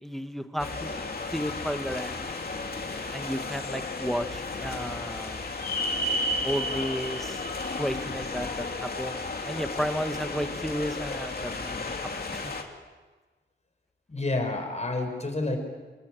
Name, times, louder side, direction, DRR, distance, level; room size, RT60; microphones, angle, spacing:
voice 1, 0.0-1.1 1.3-2.2 3.1-5.4 6.4-7.4 7.8-9.2 9.4-11.9 12.3-12.5, equal, ahead, 8 dB, 1.3 m, -33 dB
sound 1, 0.6-12.6, left 2 dB, 50° left, 2.8 m, -33 dB
voice 2, 14.1-15.6, left 2 dB, 35° left, 4 dB, 5.1 m, -29 dB
25.5 x 19.5 x 9.0 m, 1.3 s
wide cardioid pair, 95°, 20 cm